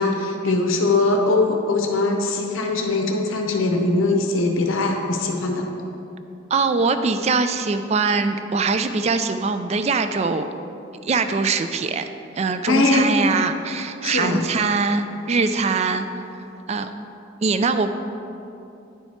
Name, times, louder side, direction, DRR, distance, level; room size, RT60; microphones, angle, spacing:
voice 1, 0.0-5.7 12.7-13.1 14.0-14.4, left 2 dB, 85° left, 2 dB, 0.7 m, -21 dB
voice 2, 6.5-10.5 11.0-12.1 12.4-16.1 16.7-16.9 17.4-17.9, right 4 dB, 30° right, 9 dB, 0.3 m, -22 dB
10.0 x 4.6 x 4.2 m, 2.8 s
head